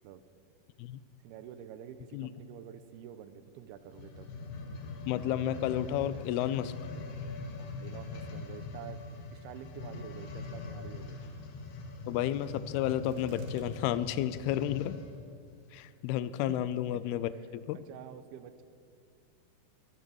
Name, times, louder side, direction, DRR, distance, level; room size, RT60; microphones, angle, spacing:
voice 1, 1.2-4.3 7.6-9.0 9.3-11.2 16.5-16.6 17.7-18.6, right 9 dB, 85° right, 12 dB, 2.6 m, -48 dB
sound 1, 3.8-15.2 15.8-15.9, left 3 dB, 65° left, 2.5 m, -42 dB
voice 2, 5.1-6.7 12.1-15.0 15.7-17.8, left 12 dB, 85° left, 15 dB, 2.4 m, -32 dB
sound 2, 12.9-13.8 14.1-14.2 14.7-15.2 15.7-15.8, right 2 dB, 55° right, 2.3 m, -57 dB
22.5 x 9.4 x 6.3 m, 2.3 s
omnidirectional pair, 4.6 m